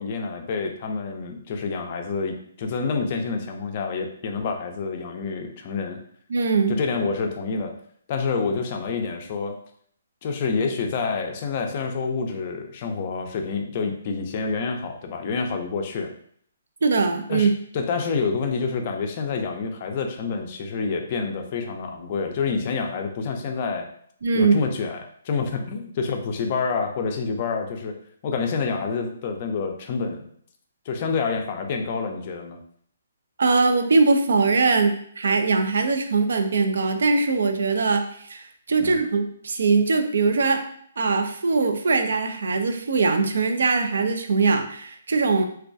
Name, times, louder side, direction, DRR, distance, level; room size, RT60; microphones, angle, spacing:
voice 1, 0.0-6.0 6.7-7.7 8.1-9.6 10.2-16.1 17.3-23.9 24.3-28.0 28.2-30.3 30.9-32.6 38.8-39.0, left 4 dB, 40° left, 4 dB, 0.4 m, -28 dB
voice 2, 6.3-6.8 16.8-17.5 24.2-24.6 33.4-38.0 38.3-40.6 41.0-45.4, right 4 dB, 70° right, 6 dB, 0.3 m, -21 dB
2.2 x 2.2 x 2.5 m, 0.62 s
hypercardioid pair, 150°, 0 cm